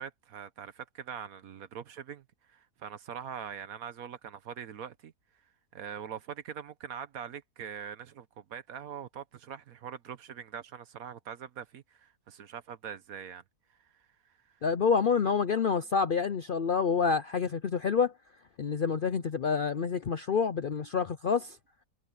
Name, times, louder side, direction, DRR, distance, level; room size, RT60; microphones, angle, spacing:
voice 1, 0.0-5.1 5.7-13.4, right 8 dB, 60° right, 1.3 m, -43 dB
voice 2, 14.6-18.1 18.6-21.6, left 5 dB, 85° left, 0.4 m, -28 dB
omnidirectional pair, 1.8 m